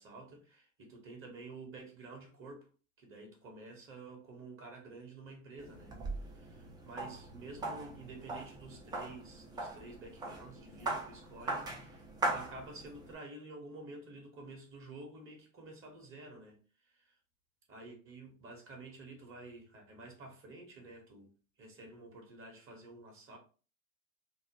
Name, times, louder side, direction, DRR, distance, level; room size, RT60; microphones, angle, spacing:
voice 1, 0.0-2.7 3.0-5.9 6.2-17.2 17.7-21.3 21.6-23.4, right 2 dB, 30° right, 1.0 m, -50 dB
sound 1, 5.6-13.1, right 2 dB, 10° right, 0.3 m, -40 dB
2.8 x 2.1 x 2.8 m
hypercardioid pair, 90°, 41 cm